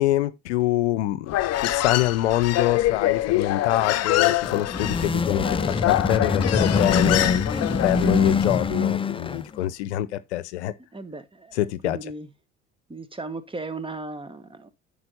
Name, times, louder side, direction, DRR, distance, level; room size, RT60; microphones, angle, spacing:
voice 1, 0.0-7.5 7.7-10.7 11.5-12.0, left 14 dB, 80° left, 0.7 m, -25 dB
Human voice, 1.3-8.4, left 14 dB, 50° left, 0.8 m, -25 dB
sound 1, 4.3-9.6, left 4 dB, 15° left, 0.6 m, -24 dB
voice 2, 7.5-8.2 10.9-11.6 11.8-12.3 12.9-14.7, right 3 dB, 15° right, 1.3 m, -36 dB
9.6 x 5.2 x 3.9 m
hypercardioid pair, 65°, 33 cm